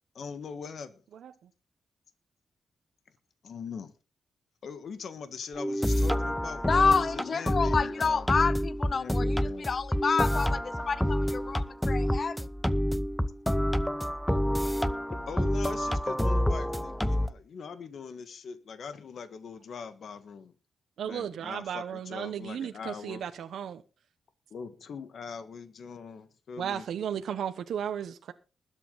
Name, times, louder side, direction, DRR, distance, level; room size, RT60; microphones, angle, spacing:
voice 1, 0.1-1.0 3.4-3.9 4.6-8.3 8.9-9.7 15.1-20.5 21.0-23.2 24.5-26.9, left 6 dB, 65° left, 1.5 m, -42 dB
sound 1, 5.6-17.3, equal, 5° left, 0.7 m, -28 dB
voice 2, 6.7-9.4 9.7-12.5, left 5 dB, 40° left, 0.6 m, -28 dB
voice 3, 21.0-23.8 26.6-28.3, right 8 dB, 85° right, 0.9 m, -34 dB
20.5 x 8.4 x 3.9 m
wide cardioid pair, 125°, 0 cm